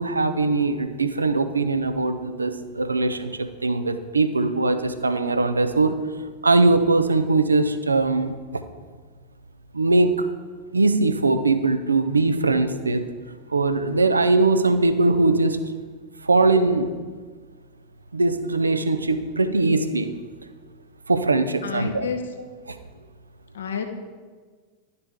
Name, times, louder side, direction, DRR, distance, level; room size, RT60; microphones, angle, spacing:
voice 1, 0.0-6.0 6.4-8.6 9.7-10.1 10.7-13.0 13.5-15.6 16.2-16.9 18.1-20.1 21.1-22.1 22.7-22.8, right 3 dB, 80° right, 9 dB, 0.6 m, -21 dB
voice 2, 21.6-22.3 23.5-23.9, left 6 dB, 65° left, 6 dB, 0.9 m, -29 dB
10.5 x 6.7 x 3.5 m, 1.5 s
figure-of-eight pair, 90°, 0 cm